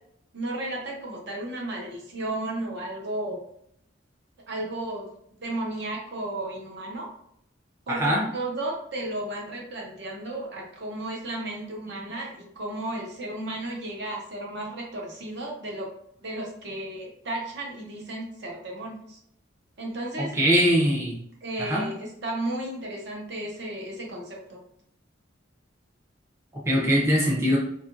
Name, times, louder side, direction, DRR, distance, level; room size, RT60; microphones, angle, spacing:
voice 1, 0.3-3.4 4.5-5.1 5.4-7.1 7.9-15.9 16.2-19.2 19.8-20.3 21.4-24.6, right 1 dB, 60° right, -1 dB, 0.7 m, -34 dB
voice 2, 7.9-8.2 20.2-21.2 21.6-21.8 26.7-27.6, equal, 15° right, -5 dB, 0.5 m, -22 dB
2.7 x 2.4 x 2.5 m, 0.72 s
head